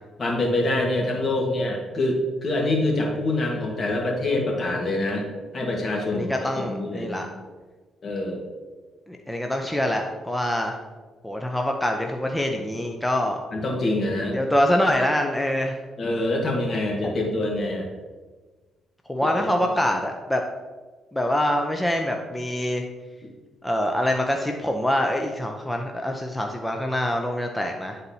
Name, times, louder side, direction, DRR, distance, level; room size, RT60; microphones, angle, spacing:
voice 1, 0.2-7.3 8.0-8.4 13.5-14.4 16.0-17.9, left 2 dB, 40° left, 0 dB, 1.4 m, -25 dB
voice 2, 6.1-7.3 9.1-10.7 11.2-13.4 14.3-15.8 17.0-17.1 19.1-20.4 21.1-22.8 23.6-28.0, left 1 dB, 5° left, 2 dB, 0.5 m, -25 dB
9.8 x 4.0 x 2.7 m, 1.3 s
cardioid pair, 90°, 0 cm